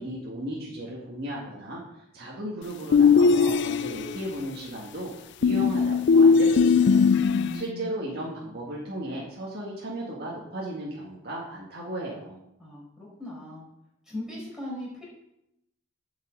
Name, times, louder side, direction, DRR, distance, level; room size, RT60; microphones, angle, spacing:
voice 1, 0.0-7.1 7.5-12.4, right 1 dB, 50° right, -4 dB, 1.9 m, -35 dB
sound 1, 2.9-4.2 5.4-7.6, left 5 dB, 55° left, 0.4 m, -19 dB
voice 2, 7.1-7.9 12.6-13.6 14.1-15.1, left 1 dB, 5° right, -6 dB, 4.9 m, -39 dB
9.1 x 5.8 x 7.5 m, 0.83 s
head